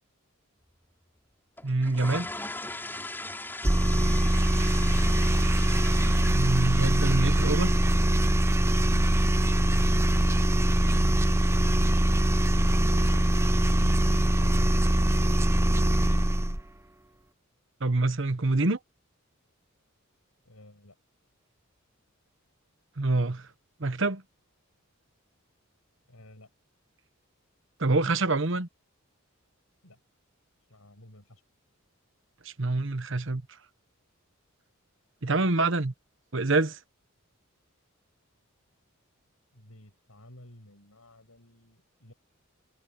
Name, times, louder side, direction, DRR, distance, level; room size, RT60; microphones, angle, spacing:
sound 1, 1.6-9.6, left 2 dB, 10° left, 3.8 m, -41 dB
voice 1, 1.6-2.3 6.2-7.7 17.8-18.8 23.0-23.5 23.8-24.2 27.8-28.7 32.4-33.4 35.2-35.9 36.3-36.8, right 2 dB, 60° right, 1.1 m, -26 dB
sound 2, 3.6-16.6, right 1 dB, 10° right, 0.7 m, -23 dB
voice 2, 10.1-11.4 12.6-16.3 20.4-21.0 26.1-26.5 29.8-30.0 30.7-31.4 39.5-42.1, left 1 dB, 90° left, 7.7 m, -52 dB
head